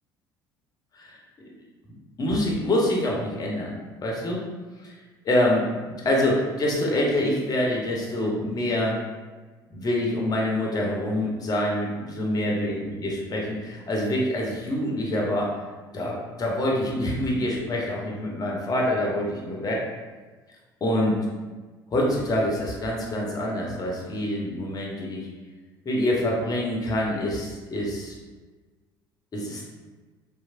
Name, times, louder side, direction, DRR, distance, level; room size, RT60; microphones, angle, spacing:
voice 1, 2.2-3.7 4.0-4.4 4.8-4.9 5.2-5.7 6.0-9.0 9.7-15.6 15.9-19.8 20.8-21.2 21.9-25.3 25.8-28.2 29.3-29.6, left 1 dB, 30° left, -2 dB, 0.7 m, -26 dB
2.9 x 2.0 x 2.5 m, 1.3 s
figure-of-eight pair, 60°, 12 cm